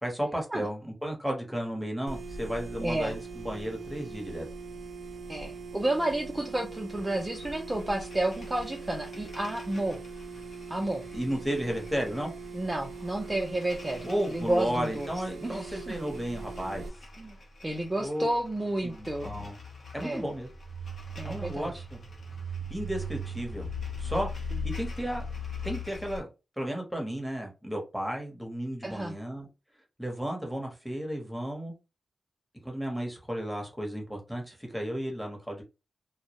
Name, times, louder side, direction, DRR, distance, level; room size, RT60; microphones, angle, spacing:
voice 1, 0.0-4.5 11.1-12.3 14.0-16.8 18.0-18.3 18.8-19.6 19.9-20.5 21.2-22.0 22.7-23.7 24.0-24.3 24.6-25.2 25.6-26.3 26.6-29.5 30.0-31.7 32.6-35.6, equal, ahead, 0.8 m, -33 dB
sound 1, 2.1-16.9, right 4 dB, 90° right, 0.4 m, -42 dB
voice 2, 2.8-3.2 5.3-10.0 10.7-11.0 12.5-15.1 15.4-15.9 17.2-17.4 17.6-19.4 20.0-20.2 21.2-21.7 28.8-29.2, right 1 dB, 15° right, 0.4 m, -31 dB
sound 2, 7.0-26.2, left 2 dB, 60° left, 0.7 m, -41 dB
2.2 x 2.0 x 2.8 m
wide cardioid pair, 105°, 0 cm